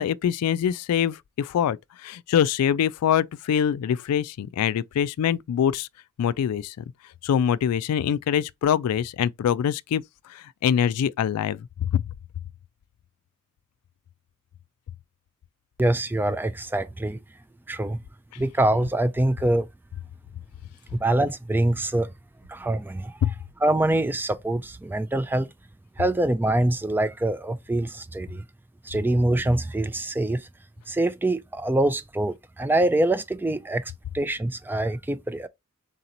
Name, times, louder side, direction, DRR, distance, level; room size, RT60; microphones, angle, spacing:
voice 1, 0.0-5.9 6.2-6.8 7.2-10.0 10.3-12.0 23.2-23.3, left 9 dB, 85° left, 0.3 m, -24 dB
voice 2, 15.8-17.2 17.7-18.0 18.4-19.7 20.9-22.1 22.5-23.3 23.6-25.5 26.0-28.4 28.8-30.5 30.9-35.5, right 1 dB, 10° right, 0.3 m, -24 dB
3.9 x 2.9 x 3.9 m
head